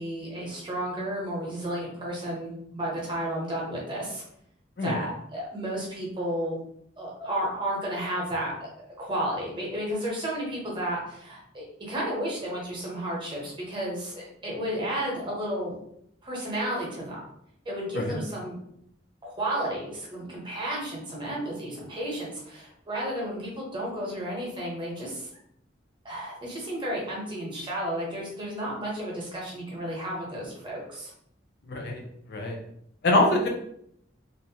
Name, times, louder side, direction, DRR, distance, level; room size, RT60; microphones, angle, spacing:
voice 1, 0.0-4.2 4.8-6.6 7.0-8.7 9.0-14.1 14.4-15.8 16.2-17.2 17.7-18.6 19.2-25.3 26.0-31.1, right 1 dB, 25° right, -3 dB, 0.8 m, -32 dB
voice 2, 31.7-32.0 32.3-32.6 33.0-33.5, left 2 dB, 60° left, 1 dB, 0.5 m, -24 dB
2.5 x 2.1 x 2.8 m, 0.72 s
head